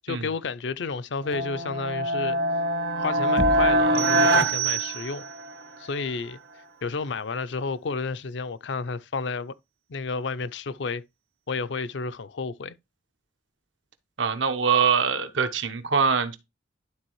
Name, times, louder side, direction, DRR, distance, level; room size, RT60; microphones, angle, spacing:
voice 1, 0.0-2.4 3.0-5.2 5.8-6.4 6.8-9.5 9.9-11.0 11.5-12.8, left 4 dB, 70° left, 0.5 m, -31 dB
sound 1, 1.2-5.6, right 1 dB, 60° right, 0.8 m, -24 dB
Knock, 3.4-4.0, left 1 dB, 90° left, 1.9 m, -30 dB
sound 2, 3.9-5.5, right 20 dB, 35° right, 0.3 m, -31 dB
voice 2, 14.2-16.4, right 6 dB, 85° right, 1.0 m, -23 dB
11.5 x 3.8 x 3.1 m
head